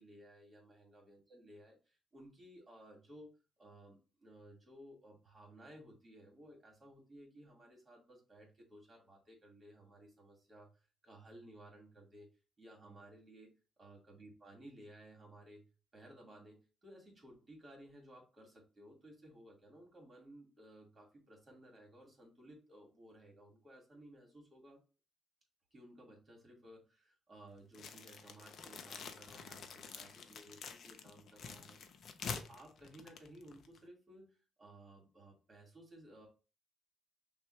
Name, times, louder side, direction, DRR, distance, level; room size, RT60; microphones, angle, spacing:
voice 1, 0.0-3.3 3.6-12.3 12.6-24.8 25.7-32.0 32.2-36.3, right 1 dB, 30° right, 0 dB, 2.2 m, -57 dB
sound 1, 27.7-33.8, left 6 dB, 60° left, 0.6 m, -48 dB
5.9 x 2.4 x 3.2 m, 0.34 s
cardioid pair, 90°, 0 cm